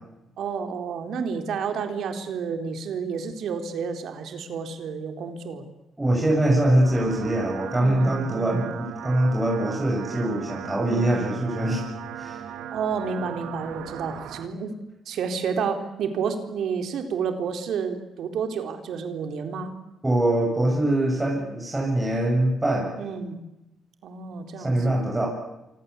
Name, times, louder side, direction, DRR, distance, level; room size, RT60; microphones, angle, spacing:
voice 1, 0.4-5.7 7.8-8.7 10.9-11.3 12.7-14.7 15.1-19.7 23.0-23.4 24.0-25.0, right 6 dB, 70° right, 6 dB, 4.2 m, -30 dB
voice 2, 6.0-11.9 12.1-12.5 20.0-22.9 24.6-25.3, right 1 dB, 15° right, -1 dB, 7.7 m, -23 dB
sound 1, 6.5-14.5, right 9 dB, 90° right, 2.7 m, -38 dB
27.5 x 25.5 x 8.4 m, 0.94 s
cardioid pair, 90°, 0 cm